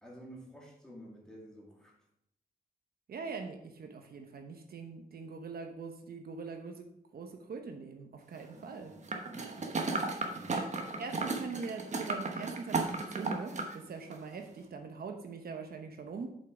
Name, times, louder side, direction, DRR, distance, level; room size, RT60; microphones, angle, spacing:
voice 1, 0.0-2.0 8.5-9.7 10.3-10.6, equal, 5° left, -3 dB, 2.3 m, -52 dB
voice 2, 3.1-8.9 10.5-10.7 11.0-16.3, right 5 dB, 70° right, 4 dB, 1.0 m, -42 dB
sound 1, 9.1-13.7 14.1-14.2, right 3 dB, 45° right, 1.1 m, -35 dB
7.3 x 5.6 x 4.9 m, 0.76 s
wide cardioid pair, 135°, 16 cm